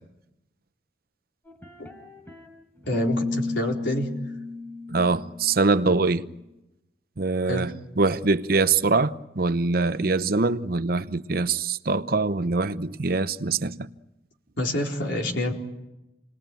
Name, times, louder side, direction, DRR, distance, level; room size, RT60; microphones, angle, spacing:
sound 1, 1.5-2.5 2.8-5.8, left 3 dB, 10° left, 4.5 m, -32 dB
voice 1, 2.9-4.1 7.5-7.7 14.6-15.5, left 1 dB, 80° left, 4.2 m, -27 dB
voice 2, 4.9-6.3 7.2-13.9, right 3 dB, 55° right, 0.8 m, -23 dB
28.0 x 20.0 x 9.1 m
head